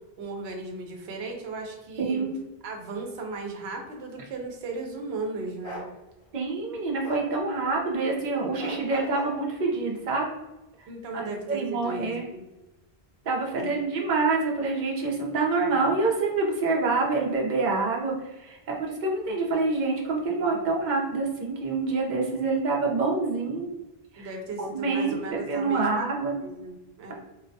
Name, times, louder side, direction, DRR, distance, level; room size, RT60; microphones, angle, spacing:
voice 1, 0.2-2.3 2.6-5.8 10.9-12.4 13.5-13.9 24.2-26.1 26.4-27.1, right 3 dB, 85° right, 1 dB, 0.9 m, -36 dB
voice 2, 2.0-2.4 6.3-10.3 11.5-12.2 13.2-23.7 24.1-24.3 24.6-26.4, right 3 dB, 55° right, -1 dB, 0.7 m, -26 dB
Bark, 5.6-5.9 7.0-7.3 8.6-9.4, equal, 60° left, 0.7 m, -37 dB
2.3 x 2.2 x 2.5 m, 1.0 s
omnidirectional pair, 1.0 m